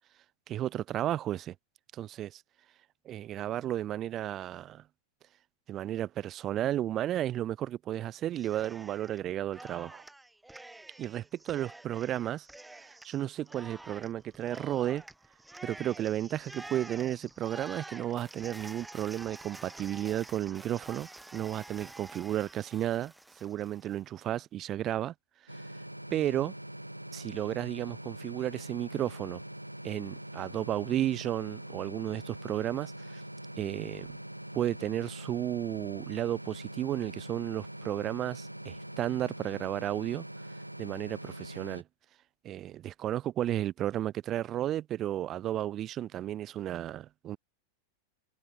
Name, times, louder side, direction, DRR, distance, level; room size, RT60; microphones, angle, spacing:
voice 1, 0.5-1.5 1.9-2.4 3.0-4.8 5.7-10.0 11.0-12.5 12.8-15.0 15.6-23.1 23.4-25.1 26.1-26.5 27.1-29.4 29.8-33.2 33.6-34.2 34.5-40.2 40.8-41.8 42.4-47.4, right 12 dB, 30° right, 1.2 m, -33 dB
Cheering, 8.4-9.2 9.5-24.0, right 2 dB, 5° right, 3.4 m, -49 dB
sound 1, 25.5-41.8, right 1 dB, 85° right, 1.1 m, -43 dB
figure-of-eight pair, 90°, 0 cm